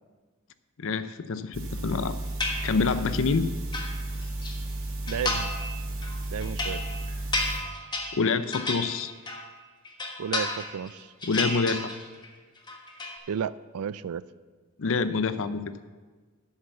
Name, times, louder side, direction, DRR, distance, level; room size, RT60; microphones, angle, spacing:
voice 1, 0.8-2.2 2.6-3.5 8.1-9.1 11.2-11.9 14.8-15.6, left 4 dB, 65° left, 13 dB, 0.6 m, -26 dB
sound 1, 1.5-7.6, right 1 dB, 65° right, 2.5 m, -33 dB
sound 2, 2.4-3.1 3.5-4.5 5.1-5.7 6.0-9.5 9.8-10.9 11.2-12.3 12.6-13.2, left 2 dB, 20° left, 1.3 m, -32 dB
voice 2, 5.1-5.5 6.3-6.8 10.2-11.1 13.3-14.2, right 7 dB, 85° right, 18 dB, 0.4 m, -32 dB
8.1 x 7.9 x 7.0 m, 1.4 s
head